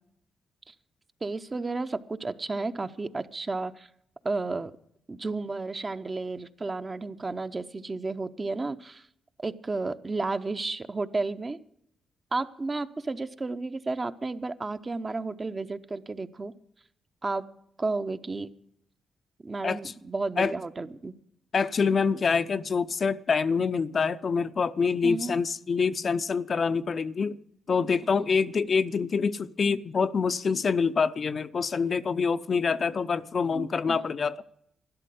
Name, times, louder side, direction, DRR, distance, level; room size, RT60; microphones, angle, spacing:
voice 1, 1.2-3.9 4.2-4.7 5.1-9.0 9.4-11.6 12.3-16.5 17.2-17.5 17.8-18.5 19.4-21.1 25.0-25.4 33.5-34.0, right 3 dB, 30° right, 0.8 m, -32 dB
voice 2, 21.5-27.4 27.7-34.4, left 5 dB, 50° left, 0.6 m, -26 dB
12.5 x 11.0 x 7.7 m
cardioid pair, 70°, 0 cm